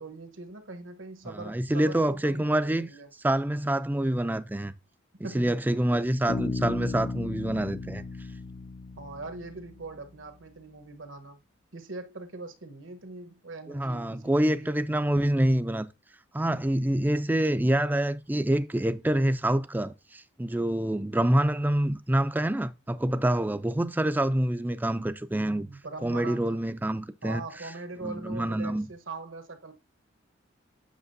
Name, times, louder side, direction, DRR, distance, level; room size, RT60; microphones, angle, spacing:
voice 1, 0.0-3.1 5.2-5.6 9.0-11.4 11.7-14.7 25.7-26.6 27.2-29.7, right 3 dB, 80° right, 1.1 m, -41 dB
voice 2, 1.2-2.9 3.2-4.7 5.2-8.0 13.7-15.9 16.3-25.7 26.0-27.4 28.0-28.9, right 1 dB, 10° right, 0.4 m, -26 dB
Bass guitar, 6.3-10.0, left 3 dB, 50° left, 0.5 m, -35 dB
8.2 x 6.3 x 2.6 m
head